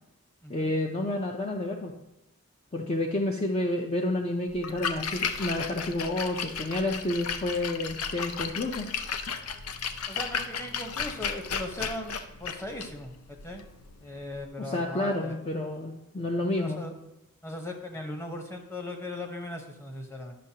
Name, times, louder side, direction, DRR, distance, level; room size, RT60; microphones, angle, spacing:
voice 1, 0.5-1.9 2.7-8.9 14.6-16.8, left 1 dB, 30° left, 1 dB, 0.5 m, -30 dB
Splash splatter, 4.5-14.4, left 6 dB, 80° left, 0.6 m, -35 dB
voice 2, 10.1-13.6 14.0-15.4 16.4-16.9 17.4-20.4, left 1 dB, 10° left, 3 dB, 0.9 m, -38 dB
10.0 x 6.4 x 2.8 m, 0.91 s
head